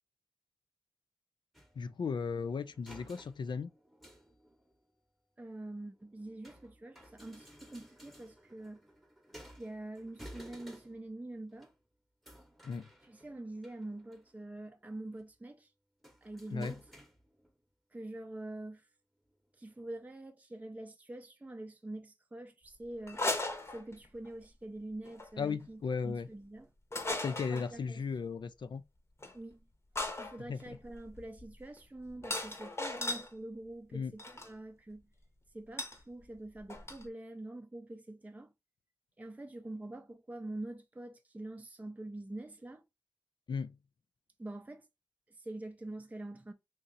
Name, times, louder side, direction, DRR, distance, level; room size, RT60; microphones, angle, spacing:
sound 1, 1.5-4.8 5.6-11.2 11.5-11.8 12.2-14.5 14.8-15.3 16.0-17.5 18.4-18.5 19.3-19.4 19.7-19.8, equal, ahead, 0.9 m, -56 dB
voice 1, 1.8-3.7 12.6-12.9 16.5-16.7 25.4-26.3 27.2-28.8 30.5-30.8 33.9-34.1 43.5-43.8, left 5 dB, 65° left, 0.3 m, -36 dB
voice 2, 5.4-8.8 9.6-11.7 13.0-15.7 16.2-16.8 17.9-18.9 19.6-23.3 23.7-26.7 27.5-28.0 29.3-29.6 30.1-35.1 35.5-38.5 39.2-42.8 44.4-44.9 45.4-46.5, right 2 dB, 20° right, 0.5 m, -45 dB
sound 2, 23.1-24.3 25.0-25.3 26.9-27.7 29.2-29.3 29.9-33.3 34.2-34.5 35.8-36.0 36.3-36.4 36.6-37.0, left 2 dB, 30° left, 0.9 m, -37 dB
3.0 x 2.7 x 3.8 m
cardioid pair, 60°, 9 cm